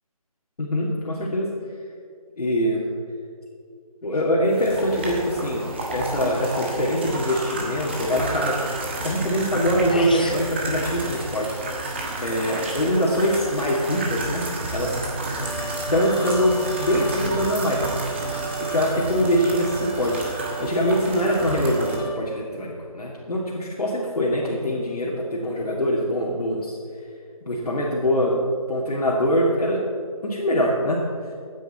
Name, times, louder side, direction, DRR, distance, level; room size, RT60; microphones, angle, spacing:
voice 1, 0.6-1.5 2.4-2.8 4.0-8.6 9.0-11.6 12.2-14.5 14.7-14.9 15.9-17.8 18.6-26.8 27.5-28.4 28.7-29.9 30.2-31.0, equal, 85° left, -4 dB, 2.3 m, -23 dB
sound 1, 4.5-22.0, right 2 dB, 20° right, 1.2 m, -31 dB
sound 2, 9.9-10.5, left 2 dB, 15° left, 0.5 m, -30 dB
Trumpet, 15.4-22.2, right 5 dB, 40° left, 3.0 m, -34 dB
15.0 x 9.2 x 4.3 m, 2.4 s
hypercardioid pair, 175°, 19 cm